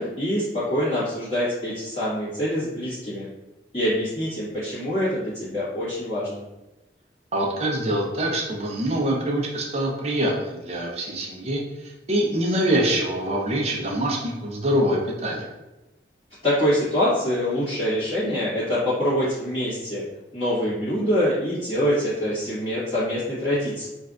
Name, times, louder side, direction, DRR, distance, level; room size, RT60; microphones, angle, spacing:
voice 1, 0.0-3.3 3.7-6.4 16.4-20.0 20.3-23.9, equal, 35° left, -15 dB, 1.5 m, -25 dB
voice 2, 7.3-15.5, right 1 dB, 35° right, -1 dB, 0.6 m, -25 dB
3.2 x 2.5 x 2.4 m, 1.0 s
head